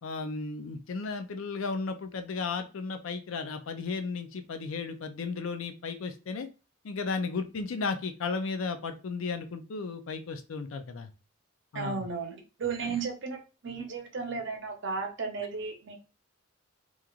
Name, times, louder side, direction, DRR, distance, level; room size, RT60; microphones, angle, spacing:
voice 1, 0.0-6.5 6.8-11.1 11.7-12.1 12.8-13.0, left 4 dB, 75° left, 8 dB, 0.5 m, -34 dB
voice 2, 11.7-13.4 13.6-16.0, right 5 dB, 60° right, 4 dB, 0.7 m, -34 dB
3.0 x 2.4 x 2.3 m, 0.32 s
head